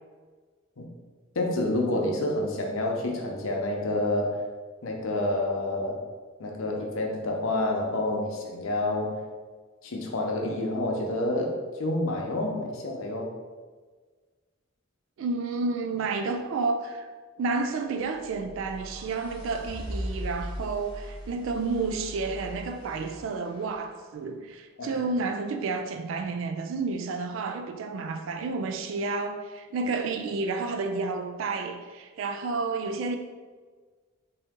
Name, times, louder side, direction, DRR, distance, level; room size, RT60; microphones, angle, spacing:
voice 1, 1.4-4.4 4.8-6.0 6.4-9.2 9.8-13.3 24.8-25.0, left 1 dB, 80° left, 0.7 m, -28 dB
voice 2, 15.2-17.1 17.4-33.2, right 3 dB, 70° right, 0.3 m, -30 dB
sound 1, 18.0-24.1, equal, 20° left, 0.9 m, -39 dB
3.8 x 2.7 x 3.5 m
head